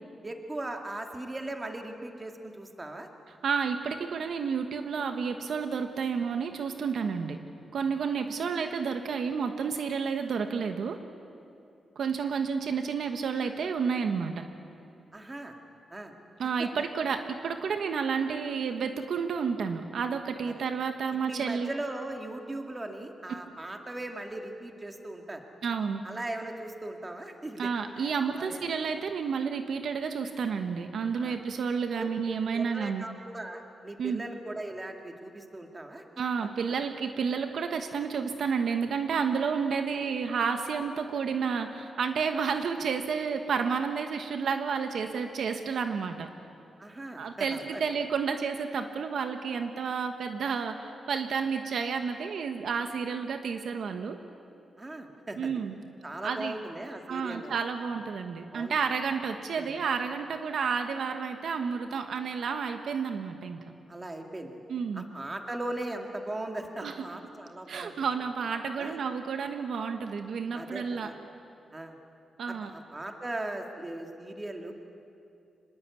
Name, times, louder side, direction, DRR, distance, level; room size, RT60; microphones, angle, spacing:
voice 1, 0.2-3.1 15.1-15.5 15.9-16.1 16.6-16.7 20.4-20.5 21.2-25.4 26.0-28.6 31.2-31.4 32.0-32.1 32.5-36.0 46.8-47.8 54.8-55.5 56.0-57.6 58.5-58.8 59.5-59.8 63.9-64.6 64.9-68.0 68.8-69.0 70.5-71.1 71.7-72.0 72.5-74.7, right 1 dB, 20° right, 3 dB, 2.2 m, -38 dB
voice 2, 3.4-7.4 7.7-11.0 11.9-14.4 16.4-21.7 25.6-26.0 27.6-33.0 34.0-34.2 36.2-46.3 47.2-54.2 55.4-55.7 56.2-56.6 57.1-63.6 64.7-65.1 66.8-66.9 67.7-71.1 72.4-72.7, right 6 dB, 70° right, 6 dB, 1.3 m, -31 dB
25.5 x 21.0 x 8.4 m, 2.6 s
wide cardioid pair, 130°, 0 cm